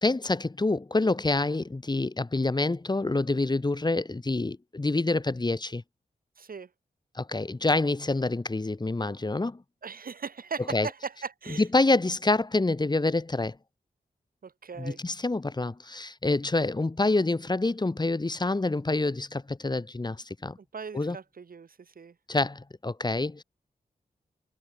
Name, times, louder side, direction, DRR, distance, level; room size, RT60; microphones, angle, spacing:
voice 1, 0.0-5.8 7.1-9.6 10.7-10.9 11.6-13.5 14.8-20.6 20.9-21.2 22.3-23.4, left 2 dB, 25° left, 1.7 m, -27 dB
voice 2, 6.4-6.7 9.8-11.6 14.4-15.0 20.6-22.1, right 5 dB, 65° right, 1.9 m, -38 dB
wide cardioid pair, 75°, 16 cm